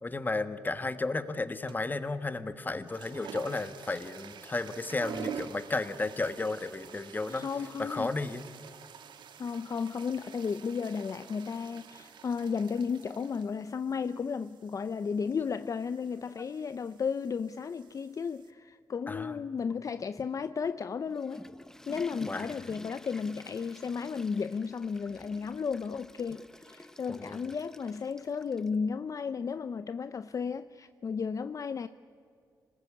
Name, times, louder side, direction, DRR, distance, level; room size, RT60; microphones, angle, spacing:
voice 1, 0.0-7.5 7.8-8.4 16.4-16.5 19.1-19.4 22.2-22.8 27.1-27.5, left 3 dB, 25° left, 1.3 m, -33 dB
sound 1, 1.7-2.0 2.7-18.5, right 7 dB, 85° right, 1.4 m, -48 dB
voice 2, 7.3-8.1 9.4-21.4 21.9-31.9, left 6 dB, 45° left, 0.5 m, -34 dB
Water / Toilet flush, 20.9-28.8, left 1 dB, 5° left, 0.7 m, -50 dB
26.0 x 20.0 x 8.6 m
cardioid pair, 95°, 8 cm